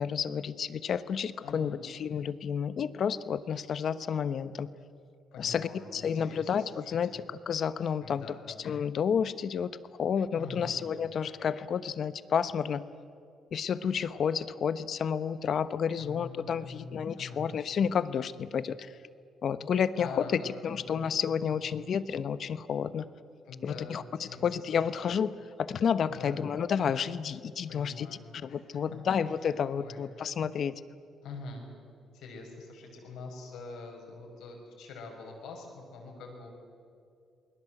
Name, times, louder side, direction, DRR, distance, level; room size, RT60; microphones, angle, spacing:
voice 1, 0.0-4.7 5.4-8.3 8.6-9.7 10.0-12.9 13.5-18.9 19.4-23.1 23.6-28.1 28.4-30.7, left 7 dB, 60° left, 14 dB, 1.0 m, -30 dB
voice 2, 1.4-1.8 5.3-7.0 8.0-8.5 10.3-10.8 16.0-16.9 17.2-17.5 19.9-21.0 23.5-24.8 26.0-26.5 27.7-29.0 29.4-30.1 31.2-31.7 32.1-36.5, left 3 dB, 85° left, 2 dB, 6.2 m, -45 dB
28.5 x 21.5 x 7.9 m, 2.4 s
cardioid pair, 90°, 0 cm